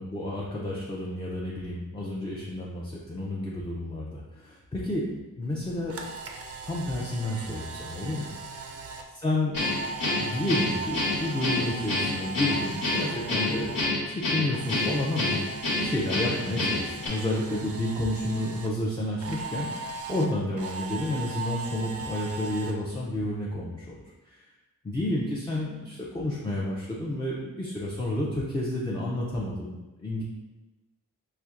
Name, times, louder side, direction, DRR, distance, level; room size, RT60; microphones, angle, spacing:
voice 1, 0.0-5.9 6.6-8.4 9.1-9.6 10.2-15.4 15.8-24.4 24.8-30.2, left 1 dB, 15° left, -5 dB, 0.4 m, -31 dB
Camera, 5.5-13.9 14.2-18.7 19.2-22.7, right 4 dB, 45° right, 0.4 m, -39 dB
Guitar, 9.5-17.1, left 2 dB, 80° left, 1.1 m, -28 dB
4.3 x 2.5 x 2.4 m, 1.1 s
wide cardioid pair, 100°, 33 cm